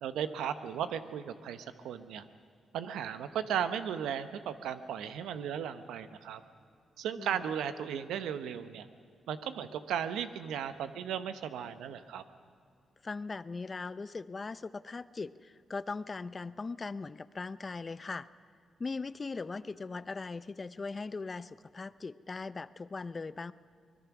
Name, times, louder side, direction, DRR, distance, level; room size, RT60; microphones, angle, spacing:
voice 1, 0.0-2.2 2.7-6.4 7.0-8.9 9.3-12.2, right 8 dB, 85° right, 11 dB, 0.9 m, -36 dB
voice 2, 13.0-18.3 18.8-23.5, left 4 dB, 35° left, 16 dB, 0.6 m, -39 dB
23.5 x 20.5 x 6.1 m, 2.4 s
cardioid pair, 65°, 0 cm